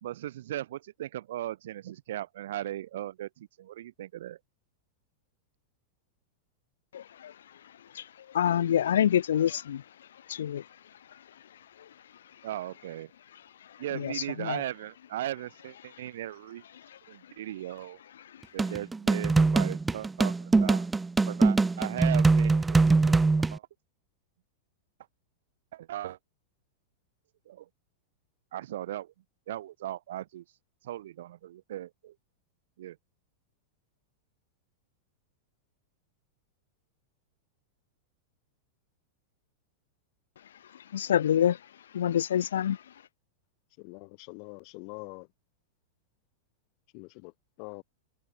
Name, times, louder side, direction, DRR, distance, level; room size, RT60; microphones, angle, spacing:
voice 1, 0.0-4.4 12.4-13.1 13.8-16.6 17.1-18.0 18.5-20.9 21.2-23.2 23.5-23.7 25.7-26.2 27.5-27.7 28.5-29.1 29.5-30.4 30.8-32.1 32.8-33.0, right 13 dB, 70° right, 4.1 m, -38 dB
voice 2, 6.9-7.3 7.9-8.0 8.3-9.8 10.3-10.6 13.9-14.1 14.4-14.6 40.9-41.6 41.9-42.8, left 10 dB, 85° left, 1.7 m, -26 dB
sound 1, 18.6-23.6, right 3 dB, 10° right, 0.6 m, -23 dB
voice 3, 43.8-45.3 46.9-47.8, left 40 dB or more, 50° left, 4.6 m, -44 dB
hypercardioid pair, 120°, 0 cm